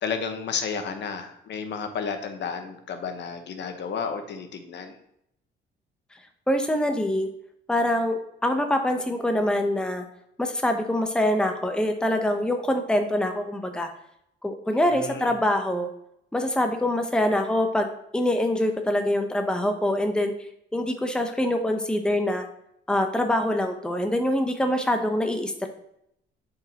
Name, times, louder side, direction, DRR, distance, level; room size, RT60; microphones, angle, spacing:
voice 1, 0.0-5.0 14.9-15.3, left 6 dB, 60° left, 6 dB, 1.0 m, -32 dB
voice 2, 6.5-7.3 7.7-10.0 10.4-13.9 14.4-15.9 16.3-17.9 18.1-20.3 20.7-22.5 22.9-25.7, left 1 dB, 5° left, 5 dB, 0.8 m, -24 dB
7.6 x 5.0 x 2.8 m, 0.75 s
cardioid pair, 90°, 20 cm